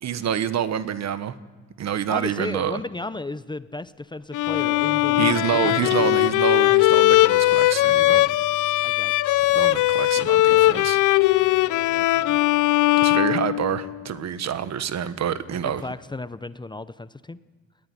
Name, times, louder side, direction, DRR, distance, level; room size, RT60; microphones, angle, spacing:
voice 1, 0.0-1.4 1.8-2.8 5.2-8.3 9.5-11.0 13.0-15.8, right 9 dB, 60° right, 13 dB, 1.3 m, -27 dB
voice 2, 2.1-6.4 6.6-6.8 8.8-9.1 9.5-9.6 10.1-10.9 11.4-12.4 15.6-17.4, left 2 dB, 15° left, 15 dB, 0.6 m, -35 dB
Bowed string instrument, 4.3-14.1, left 17 dB, 80° left, 0.6 m, -19 dB
sound 1, 4.5-13.6, left 3 dB, 5° right, 1.7 m, -46 dB
20.0 x 13.5 x 9.9 m, 1.4 s
cardioid pair, 90°, 30 cm